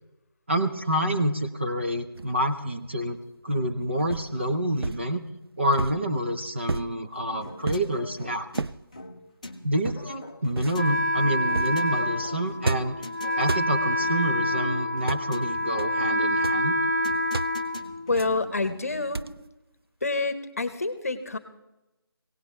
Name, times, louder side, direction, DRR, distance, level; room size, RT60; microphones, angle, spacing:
voice 1, 0.5-3.2 3.4-5.2 5.6-8.5 9.6-13.0 13.4-16.8, equal, 30° right, 4 dB, 0.7 m, -27 dB
sound 1, 2.1-2.6 4.1-4.4 4.8-5.1 5.7-6.1 6.7-7.0 7.7-8.0 8.5-8.8 9.8-10.2 10.6-10.8 11.5-11.8 12.6-13.0 13.4-13.7 14.9-15.3 15.8-16.0 16.3-16.6 17.3-17.6 18.2-18.4 19.1-19.5, right 3 dB, 80° right, 0.5 m, -32 dB
sound 2, 7.4-19.2, left 2 dB, 20° left, 0.6 m, -44 dB
Wind instrument woodwind instrument, 10.7-18.5, equal, 50° right, 1.3 m, -27 dB
voice 2, 18.1-19.2 20.0-21.4, left 3 dB, 40° left, 11 dB, 1.0 m, -27 dB
20.0 x 17.5 x 3.3 m, 0.96 s
figure-of-eight pair, 175°, 12 cm